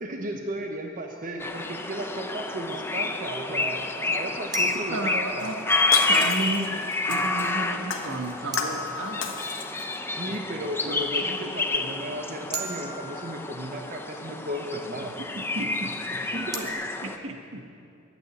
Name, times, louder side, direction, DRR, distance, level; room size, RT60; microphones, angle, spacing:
voice 1, 0.0-5.5 10.1-15.2 16.2-16.5, right 1 dB, 45° right, 2 dB, 1.0 m, -35 dB
sound 1, 1.1-1.2 4.5-5.8 8.5-9.9 12.5-13.8 16.5-16.7, right 1 dB, 20° right, 1.1 m, -37 dB
sound 2, 1.4-17.2, left 3 dB, 10° left, 0.6 m, -29 dB
voice 2, 4.6-5.6 6.1-6.7 7.1-9.2 10.3-10.5 10.8-11.6 15.5-16.7 17.0-17.6, right 2 dB, 80° right, 3 dB, 1.5 m, -34 dB
Shatter, 5.4-7.5 7.9-8.9 9.2-10.0 10.3-10.4, left 6 dB, 70° left, 1.3 m, -33 dB
12.0 x 9.1 x 9.0 m, 2.5 s
head